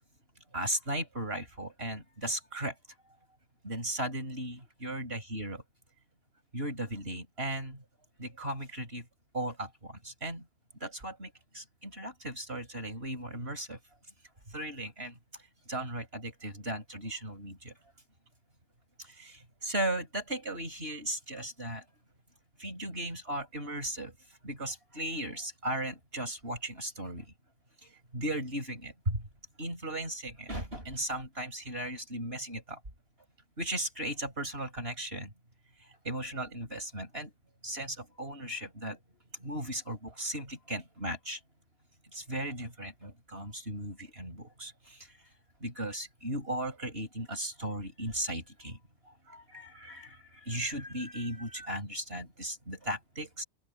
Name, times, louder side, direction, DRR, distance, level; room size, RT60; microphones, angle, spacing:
voice 1, 0.5-2.7 3.6-5.6 6.5-7.8 8.2-9.0 9.3-10.4 10.8-13.8 14.5-15.1 15.7-17.7 19.2-21.8 22.6-24.1 24.4-27.2 28.1-29.2 29.6-32.8 33.6-35.3 36.0-37.3 37.6-39.0 39.4-41.4 42.1-45.0 45.6-48.8 49.3-53.4, right 1 dB, 60° right, 6.6 m, -36 dB
open air
omnidirectional pair, 1.2 m